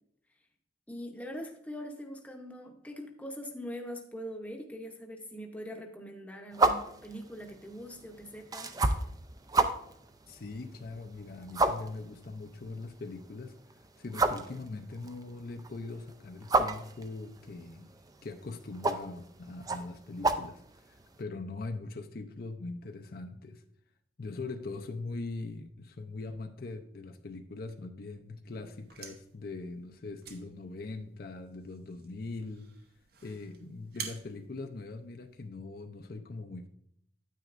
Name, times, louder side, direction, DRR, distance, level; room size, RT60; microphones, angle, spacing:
voice 1, 0.9-8.7, equal, 10° left, 3 dB, 0.8 m, -42 dB
sound 1, 6.5-21.2, right 3 dB, 20° right, 0.4 m, -33 dB
voice 2, 10.3-13.5 14.0-17.9 18.2-23.6 24.2-32.7 33.2-36.7, left 3 dB, 50° left, 6 dB, 0.5 m, -41 dB
sound 2, 28.6-35.5, right 6 dB, 55° right, 0.9 m, -49 dB
9.1 x 8.8 x 2.5 m, 0.70 s
head